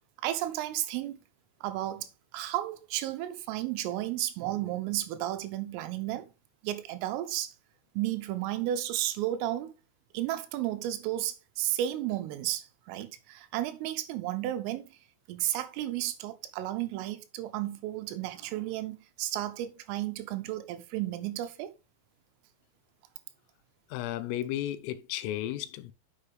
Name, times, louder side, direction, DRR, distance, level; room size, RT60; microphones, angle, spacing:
voice 1, 0.2-1.2 1.6-2.1 2.3-6.3 6.6-7.5 8.0-9.7 10.1-14.8 15.3-21.7, right 13 dB, 85° right, 3.5 m, -33 dB
voice 2, 23.9-25.9, left 13 dB, 90° left, 3.4 m, -34 dB
9.7 x 6.7 x 3.4 m
omnidirectional pair, 5.8 m